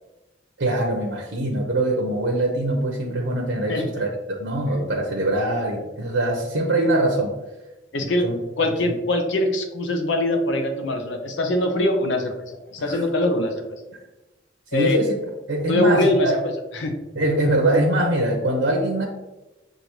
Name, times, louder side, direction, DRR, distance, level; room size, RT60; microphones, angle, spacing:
voice 1, 0.6-7.3 8.0-8.3 8.6-8.9 12.8-13.0 14.7-15.1 15.5-16.4 17.1-19.1, right 1 dB, 75° right, 0 dB, 0.7 m, -23 dB
voice 2, 3.7-4.0 7.9-8.2 8.6-13.8 14.7-15.0 15.7-16.9, left 1 dB, 70° left, 5 dB, 0.7 m, -23 dB
6.7 x 2.6 x 3.0 m, 1.1 s
head